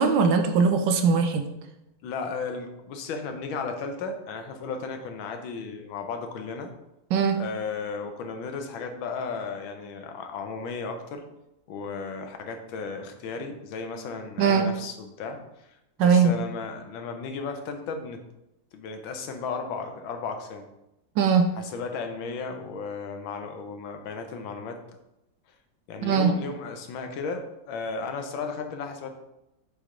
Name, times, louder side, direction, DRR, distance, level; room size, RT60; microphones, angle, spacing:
voice 1, 0.0-1.5 7.1-7.4 14.4-14.7 16.0-16.3 21.2-21.5 26.0-26.3, right 5 dB, 75° right, 6 dB, 1.3 m, -20 dB
voice 2, 2.0-6.7 7.3-11.2 11.7-15.7 16.0-18.2 18.7-20.7 21.5-24.8 25.9-29.1, left 4 dB, 80° left, 6 dB, 1.5 m, -34 dB
9.0 x 3.3 x 3.7 m, 0.90 s
omnidirectional pair, 2.2 m